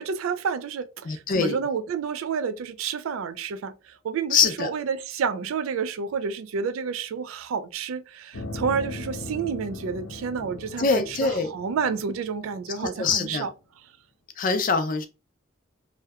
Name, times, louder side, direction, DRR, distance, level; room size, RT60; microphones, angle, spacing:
voice 1, 0.0-13.5, right 6 dB, 90° right, 0.3 m, -30 dB
voice 2, 1.1-1.6 4.3-4.7 10.8-11.5 12.8-13.5 14.4-15.1, left 5 dB, 40° left, 0.4 m, -23 dB
sound 1, 8.3-13.2, left 2 dB, 85° left, 0.6 m, -39 dB
2.7 x 2.1 x 2.3 m
head